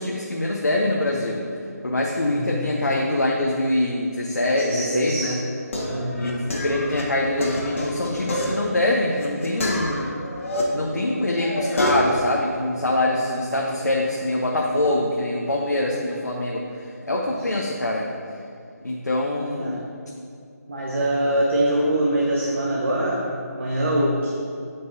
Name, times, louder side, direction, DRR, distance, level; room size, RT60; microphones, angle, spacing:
voice 1, 0.0-1.4 1.8-5.4 6.1-10.1 10.7-16.6 17.1-18.1 18.8-19.8, left 1 dB, 75° left, -2 dB, 1.0 m, -24 dB
voice 2, 4.6-5.3 5.8-6.1 17.3-17.4 19.6-19.8 20.7-24.3, right 1 dB, 45° right, -5 dB, 1.2 m, -23 dB
sound 1, 5.2-10.6 11.0-12.2, left 1 dB, 50° left, 1.7 m, -28 dB
15.0 x 5.3 x 2.7 m, 2.3 s
figure-of-eight pair, 155°, 9 cm